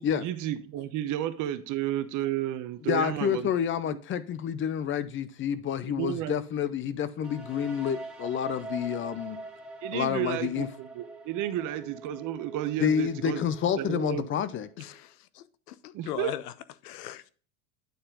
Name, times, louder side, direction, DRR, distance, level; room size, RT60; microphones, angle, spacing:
voice 1, 0.0-3.5 3.8-4.0 5.9-6.4 9.8-13.5 13.8-14.3 15.9-16.3, right 12 dB, 45° right, 0.9 m, -32 dB
voice 2, 2.9-9.4 9.9-10.7 12.8-14.7, left 9 dB, 25° left, 0.5 m, -29 dB
sound 1, 7.2-15.0, right 2 dB, ahead, 2.1 m, -43 dB
voice 3, 14.8-16.5 16.8-17.2, left 12 dB, 80° left, 0.7 m, -39 dB
9.2 x 4.3 x 3.7 m
hypercardioid pair, 100°, 45 cm